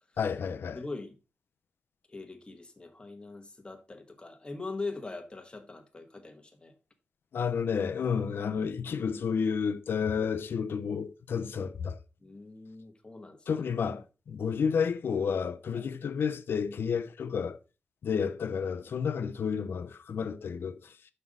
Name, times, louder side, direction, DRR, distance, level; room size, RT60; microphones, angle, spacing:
voice 1, 0.2-0.8 7.3-12.0 13.5-17.6 18.0-21.0, left 6 dB, 90° left, 0.6 m, -31 dB
voice 2, 0.7-1.1 2.1-6.7 12.2-13.6 15.7-15.9 20.3-20.6, left 3 dB, 25° left, 1.4 m, -42 dB
6.1 x 5.5 x 4.8 m
wide cardioid pair, 100°, 4 cm